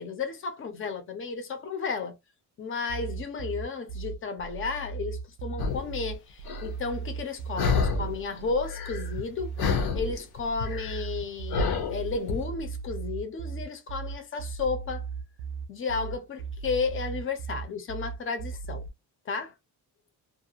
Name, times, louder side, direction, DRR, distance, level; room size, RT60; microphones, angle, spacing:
voice 1, 0.0-2.2 2.6-9.5 9.9-15.1 15.7-18.9 19.3-19.5, left 5 dB, 30° left, 0.6 m, -33 dB
sound 1, 2.9-18.9, right 6 dB, 85° right, 0.5 m, -37 dB
sound 2, 5.6-5.9 6.5-6.7 7.6-8.2 8.5-9.3 9.6-12.4, left 4 dB, 70° left, 0.8 m, -28 dB
2.5 x 2.2 x 2.7 m
cardioid pair, 150°, 39 cm